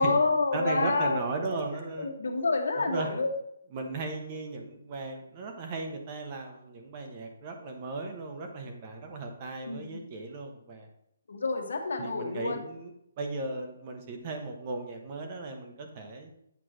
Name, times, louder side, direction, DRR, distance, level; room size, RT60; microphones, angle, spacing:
voice 1, 0.0-1.2 1.5-1.7 2.0-3.3 3.8-3.9 9.6-10.0 11.3-12.6, left 3 dB, 75° left, 4 dB, 1.3 m, -28 dB
voice 2, 0.5-2.1 2.8-3.1 3.7-10.9 12.0-12.9 13.2-16.3, right 3 dB, 20° right, 3 dB, 0.7 m, -36 dB
8.1 x 3.0 x 6.1 m, 0.76 s
hypercardioid pair, 180°, 0 cm